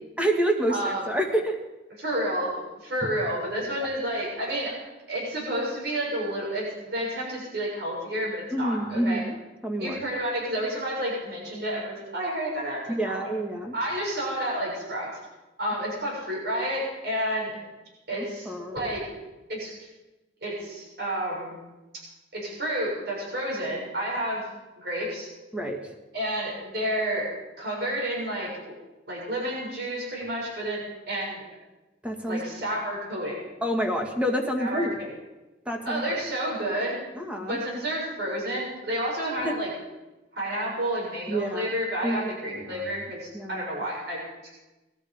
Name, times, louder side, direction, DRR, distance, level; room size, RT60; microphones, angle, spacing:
voice 1, 0.2-1.6 3.8-3.9 8.5-9.4 9.6-10.0 12.9-13.7 18.1-18.9 25.5-25.8 32.0-32.4 33.6-35.0 35.7-36.0 37.1-37.6 39.4-39.6 41.3-41.7 42.0-43.0 43.3-43.7, right 1 dB, 5° right, 3 dB, 2.0 m, -28 dB
voice 2, 0.7-1.0 2.0-2.5 2.8-4.7 5.1-9.2 9.8-13.3 13.7-15.1 15.6-17.6 18.1-19.0 19.5-19.7 20.4-21.6 22.3-24.5 24.8-25.3 26.1-27.3 27.6-28.7 29.1-31.5 32.3-33.4 34.6-35.1 35.8-37.0 37.4-39.7 40.3-44.5, right 1 dB, 65° right, -4 dB, 7.1 m, -30 dB
20.5 x 13.0 x 5.2 m, 1.1 s
head